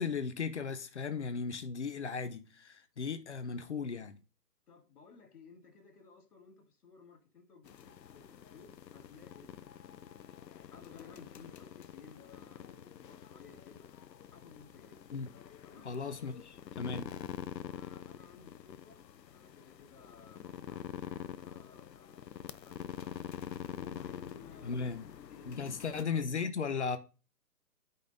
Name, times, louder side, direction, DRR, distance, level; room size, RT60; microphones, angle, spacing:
voice 1, 0.0-4.2 15.1-15.3 15.8-17.1 24.6-25.1 25.5-27.0, left 5 dB, 45° left, 0.7 m, -36 dB
voice 2, 4.7-10.2 10.7-13.9 14.3-15.0 15.6-15.9 17.6-23.0 23.6-24.9 25.3-25.7, left 5 dB, 60° left, 2.2 m, -57 dB
sound 1, 7.7-26.0, left 9 dB, 85° left, 0.7 m, -46 dB
11.5 x 5.3 x 2.6 m
hypercardioid pair, 170°, 49 cm